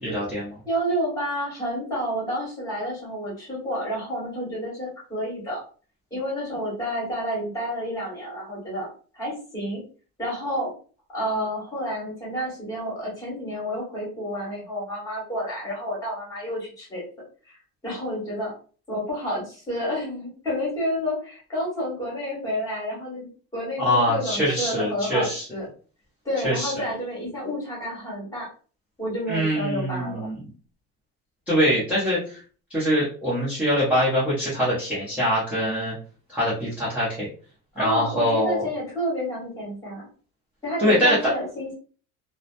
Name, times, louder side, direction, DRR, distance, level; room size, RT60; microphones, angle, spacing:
voice 1, 0.0-0.6 23.8-25.4 26.4-26.7 29.3-30.4 31.5-32.4 32.7-35.9 36.3-37.3 37.8-38.6 40.8-41.2, equal, 5° right, -8 dB, 0.5 m, -23 dB
voice 2, 0.6-5.6 6.1-8.9 9.1-9.8 10.2-10.7 11.1-17.0 17.5-17.6 17.8-18.5 18.9-23.3 23.5-25.6 26.2-28.5 29.0-30.2 37.7-40.0 40.6-41.7, equal, 10° left, -5 dB, 1.3 m, -30 dB
2.7 x 2.1 x 2.4 m, 0.40 s
cardioid pair, 180°, 31 cm